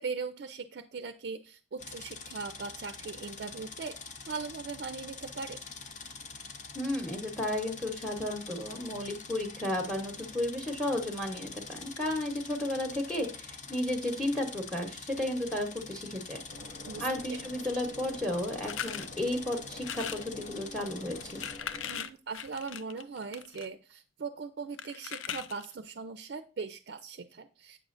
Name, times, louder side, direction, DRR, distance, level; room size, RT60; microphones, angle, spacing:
voice 1, 0.0-5.6 16.9-17.1 21.9-27.8, right 4 dB, 55° right, 9 dB, 0.4 m, -40 dB
sound 1, 1.8-21.6, left 5 dB, 40° left, 0.6 m, -45 dB
voice 2, 6.7-16.4 17.0-21.4, left 1 dB, 5° left, 4 dB, 0.9 m, -33 dB
sound 2, 16.5-22.1, left 1 dB, 70° left, 0.9 m, -48 dB
sound 3, 18.6-19.1 19.8-20.3 21.1-23.7 24.8-25.7, left 9 dB, 85° left, 0.5 m, -39 dB
7.8 x 6.1 x 2.5 m, 0.34 s
head